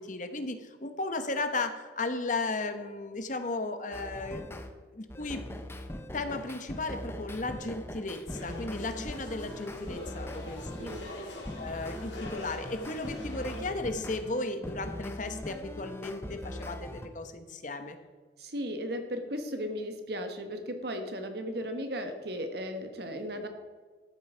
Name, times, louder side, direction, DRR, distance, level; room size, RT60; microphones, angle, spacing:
voice 1, 0.0-4.5 4.9-5.4 6.1-11.3 11.6-18.0, left 3 dB, 45° left, 8 dB, 1.0 m, -35 dB
sound 1, 3.9-4.7 5.1-11.1 11.4-17.1, left 1 dB, 15° left, 0.8 m, -41 dB
sound 2, 8.3-13.7, left 1 dB, 75° left, 3.2 m, -44 dB
voice 2, 10.8-11.1 18.4-23.5, equal, 60° right, 6 dB, 1.4 m, -36 dB
13.0 x 7.8 x 5.0 m, 1.4 s
head